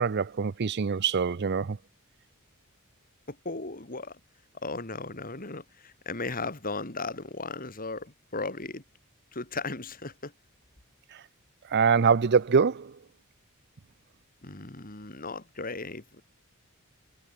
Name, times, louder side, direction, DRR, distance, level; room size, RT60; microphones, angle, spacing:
voice 1, 0.0-1.8 11.1-11.2 11.7-13.0, right 6 dB, 50° right, 0.5 m, -24 dB
voice 2, 3.3-4.2 4.6-8.8 9.3-10.3 14.4-16.2, left 3 dB, 40° left, 3.3 m, -36 dB
head